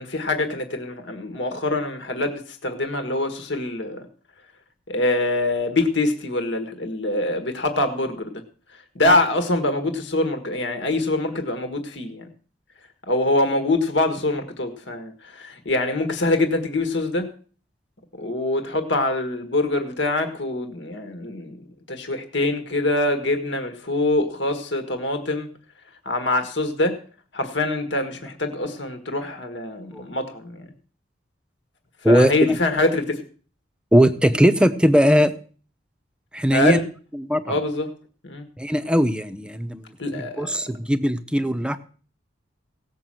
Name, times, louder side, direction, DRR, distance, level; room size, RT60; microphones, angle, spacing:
voice 1, 0.0-4.1 4.9-8.4 8.7-12.3 13.1-17.3 18.1-21.6 21.9-25.5 26.0-27.0 27.3-30.7 32.0-33.2 36.5-36.8 37.4-37.9 38.2-38.4 40.0-40.6, left 2 dB, 70° left, 6 dB, 1.6 m, -24 dB
voice 2, 32.0-32.6 33.9-35.3 36.3-36.8 37.3-37.6 38.6-39.8 40.2-41.8, equal, 5° right, 11 dB, 0.7 m, -19 dB
17.5 x 6.0 x 7.6 m, 0.42 s
head